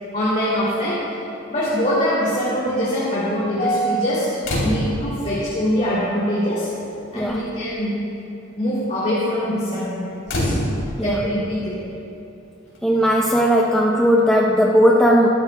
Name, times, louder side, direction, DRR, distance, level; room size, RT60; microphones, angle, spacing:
voice 1, 0.1-1.0 1.5-4.3 4.6-6.7 7.1-8.1 8.6-10.5 11.0-11.8, equal, 35° left, -9 dB, 2.9 m, -23 dB
sound 1, 4.4-5.2 6.2-6.3 6.7-7.0 7.3-7.6 10.3-11.2 12.7-12.8, equal, 70° left, 3.4 m, -24 dB
voice 2, 12.8-15.3, equal, 5° left, -4 dB, 0.7 m, -17 dB
23.0 x 12.5 x 2.3 m, 2.7 s
head